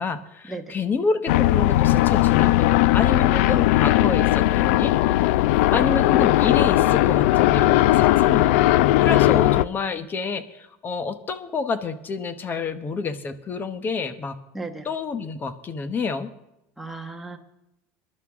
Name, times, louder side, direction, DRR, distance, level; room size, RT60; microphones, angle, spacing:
voice 1, 0.0-2.7 2.9-5.4 5.7-8.7 9.0-14.4 14.8-16.3, left 4 dB, 30° left, 11 dB, 1.1 m, -28 dB
sound 1, 1.3-9.6, left 16 dB, 80° left, 0.4 m, -18 dB
voice 2, 14.5-14.9 16.8-17.4, right 3 dB, ahead, 2 dB, 1.5 m, -35 dB
22.0 x 11.5 x 3.7 m, 0.87 s
supercardioid pair, 125°, 7 cm